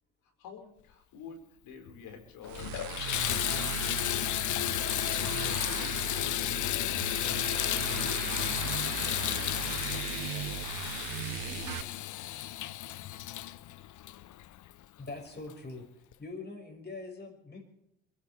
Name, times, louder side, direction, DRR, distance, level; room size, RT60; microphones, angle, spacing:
voice 1, 0.2-3.2 3.5-5.4 5.6-7.2 7.6-11.8, left 5 dB, 75° left, 4 dB, 5.0 m, -50 dB
Water tap faucet / Bathtub (filling or washing), 1.9-2.0 2.4-14.8 15.5-15.6 16.1-16.2, left 13 dB, 55° left, 0.7 m, -33 dB
sound 1, 2.4-11.8, right 20 dB, 90° right, 0.5 m, -38 dB
voice 2, 15.0-17.6, left 3 dB, 30° left, 2 dB, 5.9 m, -43 dB
22.5 x 16.5 x 3.5 m, 0.81 s
supercardioid pair, 75°, 35 cm